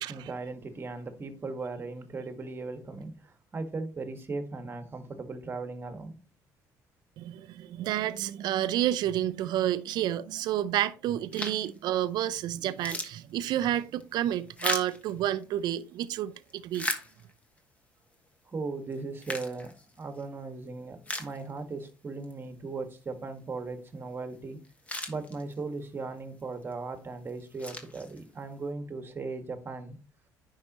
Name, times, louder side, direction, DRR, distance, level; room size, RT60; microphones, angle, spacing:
voice 1, 0.0-6.1 18.5-24.6 25.1-30.0, right 3 dB, 30° right, 1.6 m, -38 dB
voice 2, 7.2-16.9, right 12 dB, 70° right, 0.6 m, -30 dB
sound 1, 11.3-11.8 12.2-12.3 12.6-15.8 16.3-17.6 18.1-18.2 18.9-20.3 20.7-20.8 21.0-21.9 22.2-22.3 24.3-24.4 24.6-25.8 26.4-26.7 27.3-28.5, left 2 dB, 20° left, 1.5 m, -37 dB
9.6 x 5.6 x 3.0 m
cardioid pair, 95°, 7 cm